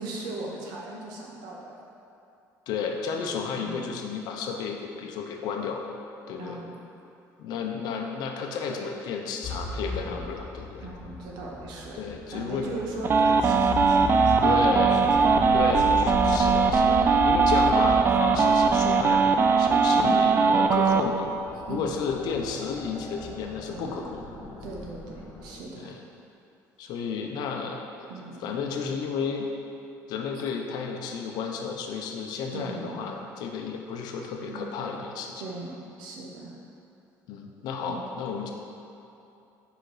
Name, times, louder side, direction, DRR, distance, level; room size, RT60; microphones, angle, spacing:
voice 1, 0.0-1.8 3.6-3.9 6.4-6.7 9.8-10.2 10.8-12.0 12.3-14.5 15.0-15.9 16.5-17.3 19.9-20.3 21.7-21.9 23.7-24.2 24.6-25.9 28.1-28.4 32.5-33.0 34.4-34.9 35.4-36.5 37.9-38.1, right 2 dB, 80° right, -2 dB, 1.0 m, -38 dB
voice 2, 2.7-5.8 6.3-6.6 7.4-10.8 11.9-12.7 14.4-15.0 15.5-19.2 19.6-21.3 21.7-24.2 25.8-26.0 26.8-28.1 28.4-29.5 30.1-35.4 37.3-38.5, left 5 dB, 75° left, 2 dB, 0.7 m, -32 dB
sound 1, 9.4-25.7, left 3 dB, 40° left, 0.7 m, -36 dB
sound 2, 13.0-21.0, right 5 dB, 30° right, 0.3 m, -20 dB
5.0 x 4.5 x 4.8 m, 2.8 s
cardioid pair, 95°, 7 cm